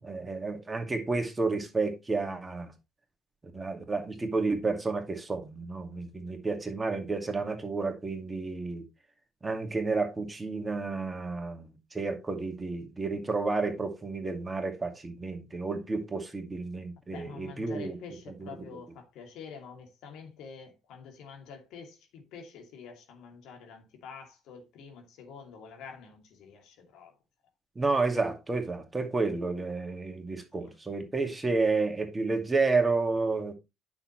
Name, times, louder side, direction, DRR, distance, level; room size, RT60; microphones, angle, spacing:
voice 1, 0.0-2.7 3.5-8.8 9.4-18.0 18.4-18.7 27.8-33.5, right 3 dB, 20° right, 2.3 m, -31 dB
voice 2, 17.1-27.1, left 6 dB, 60° left, 2.6 m, -47 dB
9.6 x 6.3 x 3.1 m
hypercardioid pair, 55°, 0 cm